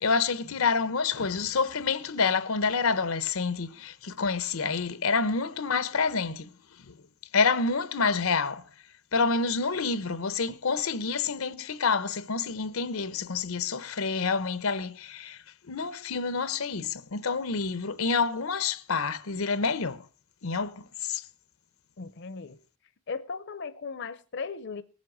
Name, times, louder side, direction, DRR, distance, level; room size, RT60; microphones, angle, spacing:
voice 1, 0.0-6.5 7.3-8.6 9.1-15.4 15.7-20.0 20.4-20.8 21.1-21.2, left 4 dB, 90° left, 0.8 m, -28 dB
voice 2, 22.0-22.6 23.1-24.8, left 5 dB, 60° left, 0.6 m, -37 dB
18.5 x 7.5 x 6.0 m
head